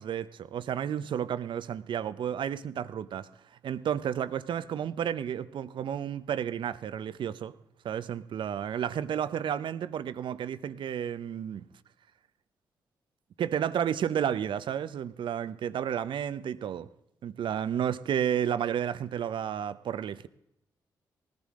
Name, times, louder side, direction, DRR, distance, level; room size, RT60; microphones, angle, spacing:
voice 1, 0.0-3.3 3.6-7.5 7.8-11.6 13.4-16.9 17.2-20.3, right 9 dB, 65° right, 0.8 m, -31 dB
19.5 x 14.5 x 3.8 m
hypercardioid pair, 40°, 9 cm